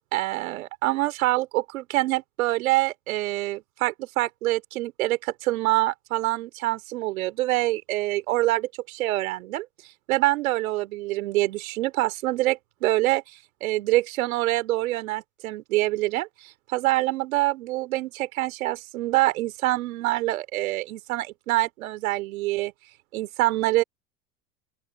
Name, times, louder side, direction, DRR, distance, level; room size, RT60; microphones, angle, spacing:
voice 1, 0.1-9.7 10.1-22.7 23.1-23.8, right 18 dB, 75° right, 3.7 m, -25 dB
open air
hypercardioid pair, 70°, 42 cm